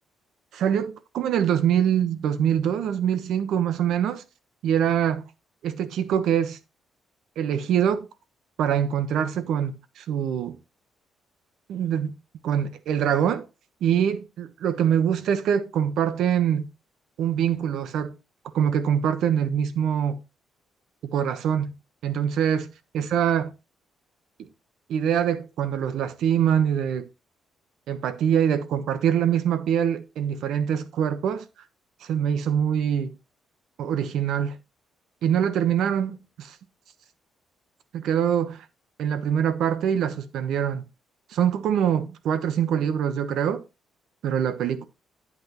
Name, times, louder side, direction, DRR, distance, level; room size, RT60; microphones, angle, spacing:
voice 1, 0.5-4.2 4.6-5.2 5.6-6.6 7.4-8.1 8.6-10.6 11.7-12.1 12.4-13.5 13.8-16.7 17.2-18.1 18.5-20.2 21.0-21.7 22.0-22.7 22.9-23.5 24.9-27.1 27.9-31.5 32.0-33.1 33.8-34.6 35.2-36.6 37.9-38.6 39.0-40.9 41.3-43.6 44.2-44.8, right 9 dB, 80° right, 1.1 m, -24 dB
8.7 x 8.5 x 3.0 m
cardioid pair, 90°, 0 cm